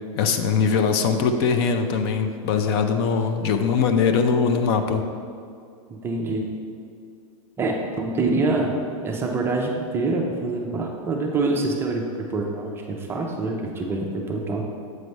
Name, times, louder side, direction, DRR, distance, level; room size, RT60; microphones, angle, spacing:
voice 1, 0.2-5.1, left 5 dB, 45° left, 7 dB, 0.5 m, -21 dB
voice 2, 5.9-6.5 7.6-8.7 9.0-14.6, right 3 dB, 15° right, 1 dB, 0.4 m, -25 dB
7.7 x 3.2 x 5.3 m, 2.3 s
supercardioid pair, 155°, 17 cm